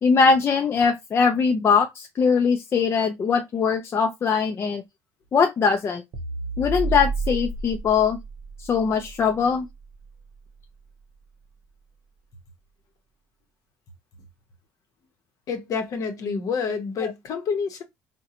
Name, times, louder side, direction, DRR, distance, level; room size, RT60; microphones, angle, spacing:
voice 1, 0.0-4.8 5.3-6.0 6.6-8.2 8.6-9.7 17.0-17.1, left 5 dB, 40° left, 0.5 m, -21 dB
sound 1, 6.1-10.6, right 3 dB, 65° right, 0.7 m, -32 dB
voice 2, 15.5-17.8, left 5 dB, 60° left, 0.8 m, -28 dB
3.7 x 2.2 x 2.8 m
supercardioid pair, 95°, 7 cm